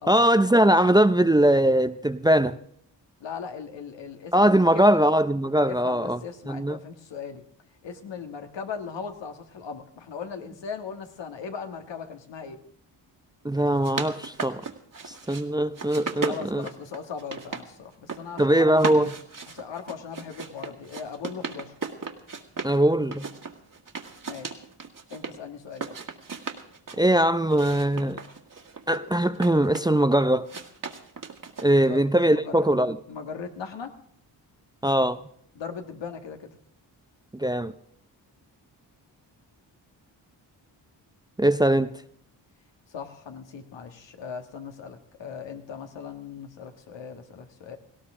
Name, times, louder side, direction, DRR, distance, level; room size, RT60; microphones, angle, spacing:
voice 1, 0.1-2.6 4.3-6.2 6.5-6.8 13.4-14.6 15.1-16.7 18.4-19.1 22.6-23.3 27.0-28.2 28.9-30.5 31.6-33.0 34.8-35.2 37.3-37.7 41.4-41.9, right 1 dB, 10° right, 0.6 m, -21 dB
voice 2, 3.2-5.0 5.7-7.4 7.8-12.6 16.3-19.1 19.5-21.7 24.3-24.7 25.1-25.9 31.9-32.0 32.3-33.9 35.6-36.5 42.9-47.8, left 6 dB, 75° left, 1.8 m, -38 dB
sound 1, 13.6-15.4 15.7-17.6 17.9-18.4 18.7-22.8 23.1-25.3 25.7-27.0 27.5-30.0 30.5-32.0, right 5 dB, 45° right, 1.9 m, -36 dB
18.5 x 16.5 x 3.7 m
cardioid pair, 60°, 44 cm